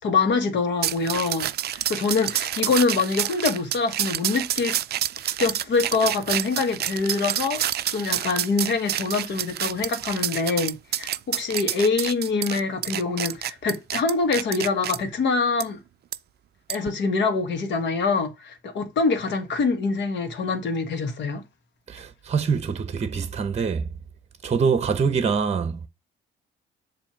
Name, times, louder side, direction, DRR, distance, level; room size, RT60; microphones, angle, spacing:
voice 1, 0.0-4.8 5.2-7.6 7.9-15.8 16.7-21.4, left 4 dB, 65° left, 1.4 m, -25 dB
sound 1, 0.8-15.0 15.6-15.7 16.1-16.2 16.7-16.9, right 12 dB, 55° right, 0.4 m, -28 dB
voice 2, 21.9-23.8 24.4-25.9, right 5 dB, 35° right, 0.8 m, -24 dB
7.3 x 2.8 x 5.8 m
cardioid pair, 90°, 20 cm